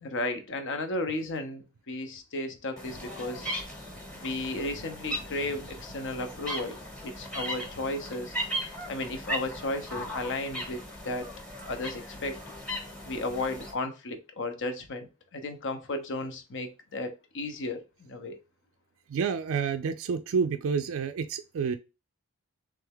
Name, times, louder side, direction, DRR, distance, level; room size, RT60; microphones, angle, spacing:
voice 1, 0.0-3.5 4.2-6.8 7.0-8.3 8.9-11.3 11.6-12.4 13.0-18.4, left 2 dB, 55° left, 0.8 m, -34 dB
sound 1, 2.8-13.7, equal, 5° left, 1.0 m, -38 dB
voice 2, 19.1-21.8, right 6 dB, 60° right, 0.4 m, -29 dB
3.4 x 3.3 x 3.5 m
head